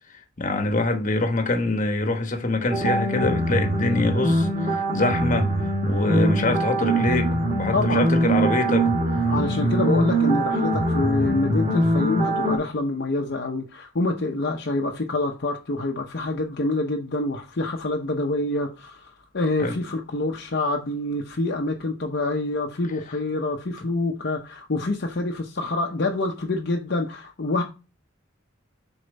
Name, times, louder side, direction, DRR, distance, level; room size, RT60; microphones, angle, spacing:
voice 1, 0.4-5.5 5.9-8.9 19.6-19.8, left 2 dB, 40° left, 1.1 m, -24 dB
sound 1, 2.7-12.6, right 1 dB, 35° right, 1.9 m, -23 dB
voice 2, 7.7-8.3 9.3-27.6, left 2 dB, 55° left, 0.8 m, -26 dB
6.7 x 4.3 x 4.1 m
head